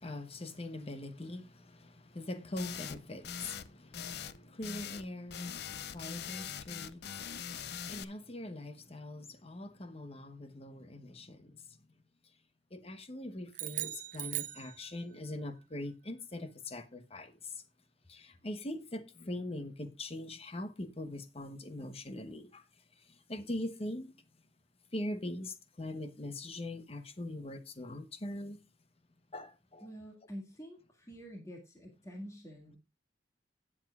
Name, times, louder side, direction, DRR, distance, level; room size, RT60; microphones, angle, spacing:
voice 1, 0.0-11.8 12.7-17.6 18.1-22.7 23.0-24.2 24.9-28.6 29.3-29.9, left 1 dB, 35° left, 1.0 m, -42 dB
sound 1, 2.6-3.0 3.2-3.7 3.9-5.1 5.3-8.0, left 8 dB, 60° left, 0.6 m, -42 dB
sound 2, 13.5-15.3, right 15 dB, 45° right, 0.5 m, -39 dB
voice 2, 29.8-32.8, equal, 15° left, 1.9 m, -47 dB
17.5 x 7.4 x 2.4 m
head